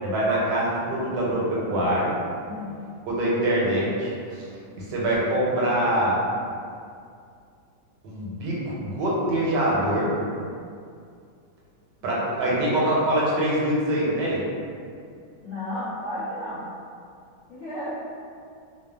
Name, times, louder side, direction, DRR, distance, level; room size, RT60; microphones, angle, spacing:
voice 1, 0.0-2.1 3.1-4.4 4.9-6.2 8.0-10.1 12.0-14.4, right 1 dB, 80° right, -6 dB, 1.2 m, -24 dB
voice 2, 2.4-2.8 12.0-12.6 15.4-16.7 17.5-18.0, left 1 dB, 65° left, -12 dB, 0.7 m, -34 dB
3.0 x 2.1 x 2.2 m, 2.3 s
omnidirectional pair, 1.9 m